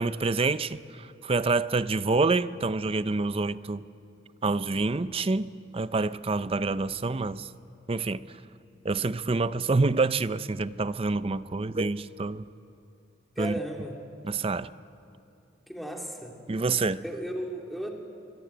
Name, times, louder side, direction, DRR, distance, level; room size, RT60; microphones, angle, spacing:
voice 1, 0.0-3.8 4.4-7.5 7.9-8.3 8.8-12.4 13.4-13.5 14.2-14.7 16.5-17.0, right 3 dB, 30° right, 0.5 m, -27 dB
voice 2, 13.4-14.0 15.7-16.4 17.0-17.9, right 1 dB, ahead, 2.7 m, -35 dB
24.5 x 22.5 x 8.9 m
head